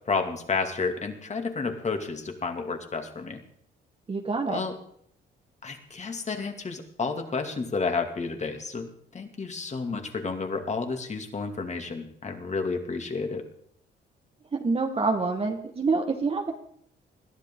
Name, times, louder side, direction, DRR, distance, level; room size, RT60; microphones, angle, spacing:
voice 1, 0.1-3.4 4.5-4.7 5.6-13.5, left 4 dB, 35° left, 5 dB, 2.7 m, -31 dB
voice 2, 4.1-4.6 14.5-16.5, right 3 dB, 30° right, 3 dB, 1.7 m, -26 dB
21.0 x 13.5 x 3.8 m, 0.64 s
cardioid pair, 90°, 20 cm